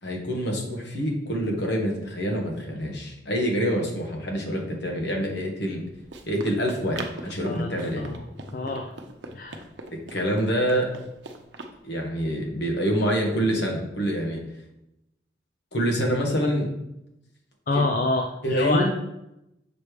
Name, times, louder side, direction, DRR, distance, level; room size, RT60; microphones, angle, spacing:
voice 1, 0.0-5.8 6.3-8.0 9.9-10.9 11.8-14.4 15.7-16.7 17.7-17.8 18.4-18.9, equal, 70° left, 0 dB, 1.4 m, -26 dB
Run, 5.6-11.8, right 2 dB, 85° right, 0.7 m, -41 dB
voice 2, 7.4-8.2 8.5-9.0 9.3-9.6 17.7-18.9, left 2 dB, 50° left, 2 dB, 0.5 m, -27 dB
6.7 x 3.2 x 5.0 m, 0.86 s
head